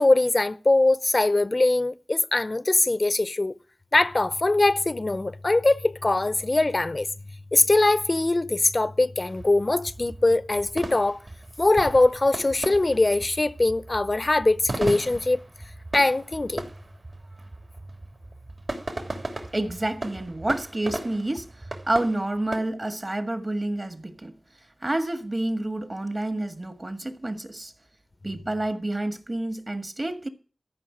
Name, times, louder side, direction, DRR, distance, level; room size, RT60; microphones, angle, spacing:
voice 1, 0.0-3.5 3.9-7.1 7.5-11.2 11.6-15.4 15.9-16.6, left 2 dB, 50° left, 0.6 m, -22 dB
sound 1, 9.2-22.6, right 2 dB, 60° right, 3.3 m, -37 dB
voice 2, 19.5-21.5 21.9-24.3 24.8-27.7 28.2-30.3, right 1 dB, 40° right, 1.7 m, -29 dB
14.0 x 5.8 x 8.6 m
wide cardioid pair, 45°, 0 cm